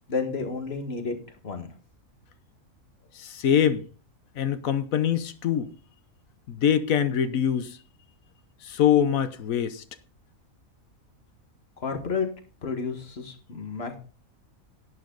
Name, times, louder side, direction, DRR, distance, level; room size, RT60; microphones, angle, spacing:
voice 1, 0.1-1.2 1.4-1.7 11.8-12.3 12.6-14.0, left 4 dB, 45° left, 1.9 m, -31 dB
voice 2, 3.2-3.8 4.4-5.7 6.5-7.8 8.6-9.8, left 9 dB, 75° left, 1.3 m, -24 dB
11.0 x 9.8 x 3.9 m
omnidirectional pair, 1.4 m